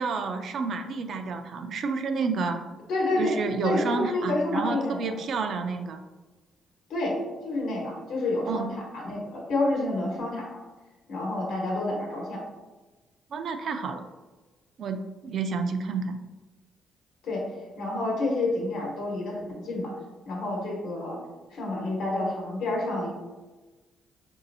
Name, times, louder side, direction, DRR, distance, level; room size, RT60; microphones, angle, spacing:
voice 1, 0.0-2.6 3.1-6.0 8.5-8.7 13.3-14.0 14.8-16.2, right 4 dB, 60° right, 7 dB, 0.4 m, -30 dB
voice 2, 2.9-3.4 3.6-5.2 6.9-7.2 7.4-10.6 11.1-12.4 17.2-19.9 20.2-21.2 21.5-23.1, left 2 dB, 75° left, -2 dB, 1.1 m, -29 dB
3.9 x 2.7 x 2.6 m, 1.2 s
cardioid pair, 90°, 0 cm